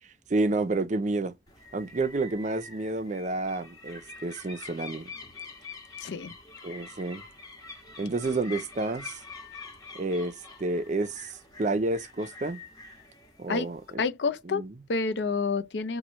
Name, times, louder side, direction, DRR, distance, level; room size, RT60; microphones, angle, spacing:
voice 1, 0.3-1.3 1.7-5.1 6.6-7.2 8.0-9.2 9.9-11.3 11.6-12.6 13.4-14.0 14.5-14.7, right 2 dB, 45° right, 0.5 m, -30 dB
sound 1, 1.5-13.9, left 4 dB, 20° left, 1.2 m, -46 dB
voice 2, 6.0-6.3 13.5-13.7 14.0-14.6 14.9-16.0, left 4 dB, 80° left, 0.5 m, -28 dB
3.0 x 2.2 x 4.0 m
head